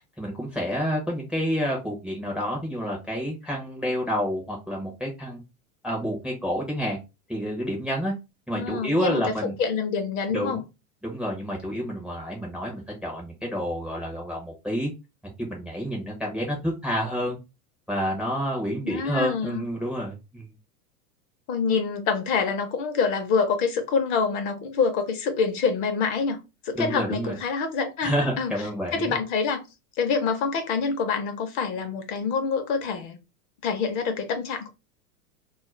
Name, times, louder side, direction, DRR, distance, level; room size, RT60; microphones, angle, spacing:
voice 1, 0.2-5.4 5.8-7.0 7.3-8.1 8.5-9.5 10.3-10.6 11.0-14.9 15.4-17.4 17.9-20.5 26.7-27.3 28.0-29.1, equal, ahead, 0.5 m, -29 dB
voice 2, 8.5-10.6 18.8-19.7 21.5-26.4 26.6-28.5 28.9-29.6 30.0-33.2 33.6-34.7, left 5 dB, 40° left, 0.7 m, -26 dB
2.4 x 2.0 x 3.0 m
hypercardioid pair, 105°, 46 cm